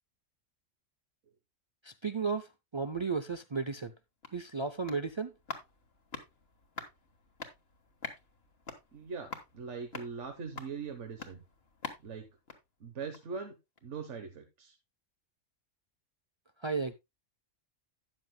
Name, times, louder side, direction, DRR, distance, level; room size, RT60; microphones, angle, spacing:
voice 1, 1.8-3.9 4.3-5.3 16.6-16.9, right 4 dB, 50° right, 0.3 m, -34 dB
sound 1, 3.9-13.4 13.8-13.9, left 4 dB, 55° left, 1.7 m, -47 dB
voice 2, 8.9-11.4 12.0-12.3 12.8-13.6 13.8-14.8, right 5 dB, 70° right, 1.4 m, -41 dB
12.5 x 9.5 x 2.2 m
omnidirectional pair, 1.3 m